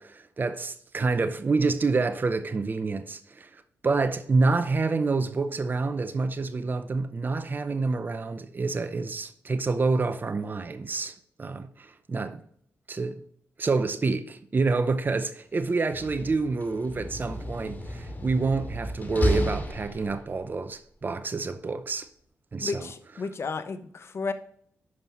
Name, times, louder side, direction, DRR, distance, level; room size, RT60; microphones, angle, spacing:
voice 1, 0.0-12.4 12.9-13.2 13.6-22.1 22.5-22.9, right 3 dB, 35° right, 0.7 m, -28 dB
Slam, 15.8-20.5, left 1 dB, 35° left, 2.3 m, -32 dB
voice 2, 22.6-24.3, left 4 dB, 55° left, 0.9 m, -33 dB
9.6 x 5.5 x 3.0 m
cardioid pair, 55°, 5 cm